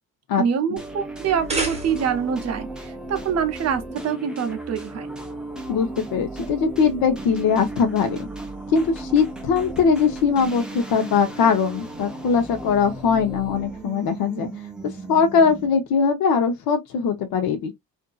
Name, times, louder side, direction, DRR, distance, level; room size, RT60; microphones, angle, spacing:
voice 1, 0.4-5.1, right 7 dB, 45° right, 0.6 m, -25 dB
sound 1, 0.8-15.9, right 2 dB, ahead, 0.4 m, -36 dB
sound 2, 1.2-2.3, right 2 dB, 20° right, 0.8 m, -30 dB
voice 2, 5.7-8.3 8.7-14.5 15.1-17.7, left 6 dB, 80° left, 0.8 m, -21 dB
2.6 x 2.5 x 2.3 m
cardioid pair, 135°, 35 cm